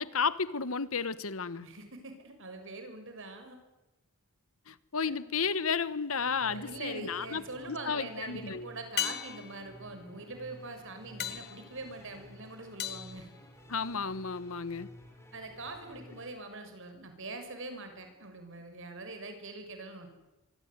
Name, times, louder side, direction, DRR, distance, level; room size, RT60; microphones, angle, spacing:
voice 1, 0.0-1.7 4.7-8.7 13.7-14.9, left 5 dB, 70° left, 1.3 m, -33 dB
voice 2, 1.6-3.6 5.0-5.2 6.4-13.3 15.3-20.1, right 2 dB, 60° right, 6.3 m, -43 dB
sound 1, 6.2-16.3, equal, 15° left, 5.9 m, -53 dB
sound 2, 6.8-7.2 9.0-14.1 18.6-18.7, left 10 dB, 50° left, 1.6 m, -40 dB
25.0 x 24.5 x 9.7 m
head